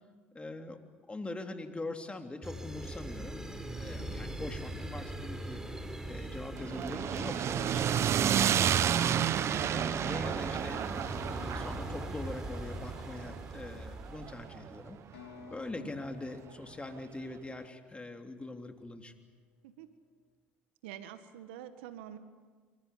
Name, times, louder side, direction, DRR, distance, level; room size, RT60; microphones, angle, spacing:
voice 1, 0.3-0.8 1.1-5.6 6.1-9.3 9.7-10.8 11.3-15.0 15.5-19.1, left 2 dB, 20° left, 5 dB, 3.4 m, -43 dB
sound 1, 2.4-14.7, right 1 dB, 10° right, 4.5 m, -41 dB
sound 2, 6.6-14.8, right 9 dB, 50° right, 0.9 m, -31 dB
sound 3, 15.1-18.9, left 5 dB, 80° left, 4.1 m, -54 dB
voice 2, 20.8-22.2, right 11 dB, 75° right, 10 dB, 1.7 m, -46 dB
26.5 x 24.5 x 8.6 m, 1.5 s
hypercardioid pair, 60°, 6 cm